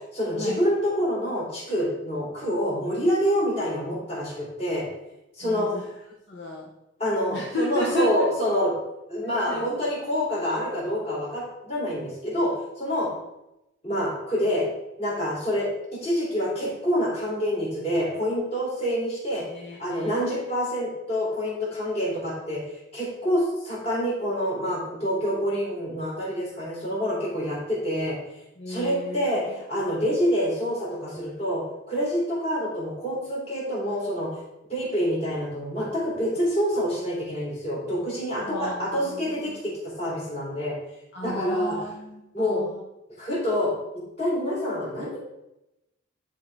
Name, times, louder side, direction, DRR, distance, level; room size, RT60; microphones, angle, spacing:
voice 1, 0.1-4.8 5.4-5.8 7.0-8.7 9.1-13.1 13.8-14.7 15.0-19.4 19.8-22.6 22.9-28.2 28.7-34.3 34.7-40.7 41.2-41.8 42.3-42.6 43.2-43.7 44.2-45.2, equal, 30° left, -6 dB, 3.2 m, -27 dB
voice 2, 5.4-5.8 6.3-6.7 7.3-8.1 9.2-9.9 19.4-20.2 28.6-29.5 38.4-39.6 41.1-42.8, left 1 dB, 60° left, -2 dB, 1.0 m, -35 dB
11.5 x 3.8 x 4.5 m, 0.91 s
head